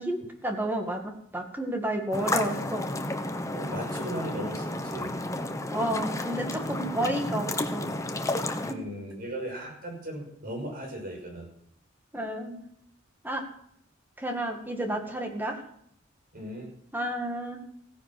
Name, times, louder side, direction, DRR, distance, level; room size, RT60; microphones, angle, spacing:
voice 1, 0.0-2.9 5.7-7.8 8.5-8.8 12.1-12.6 13.2-13.4 14.2-15.6 16.9-17.6, right 1 dB, 10° right, 3 dB, 2.1 m, -31 dB
sound 1, 2.1-8.7, left 2 dB, 15° left, 1.0 m, -32 dB
voice 2, 3.5-5.1 8.6-11.4 16.3-16.7, right 1 dB, 50° right, 1 dB, 5.8 m, -37 dB
16.0 x 10.0 x 6.2 m, 0.69 s
head